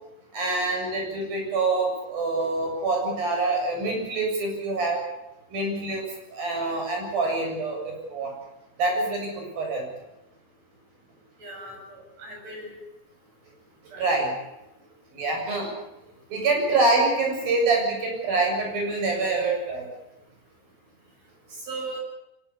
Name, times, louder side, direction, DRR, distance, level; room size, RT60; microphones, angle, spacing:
voice 1, 0.3-5.1 5.5-6.0 6.3-8.3 8.8-9.9 14.0-14.3 15.1-15.7 16.3-19.9, right 3 dB, 70° right, 1 dB, 9.3 m, -25 dB
voice 2, 11.4-12.7 13.9-14.1 21.6-22.0, right 2 dB, 45° right, 1 dB, 9.1 m, -38 dB
23.0 x 20.0 x 8.6 m, 0.92 s
omnidirectional pair, 4.4 m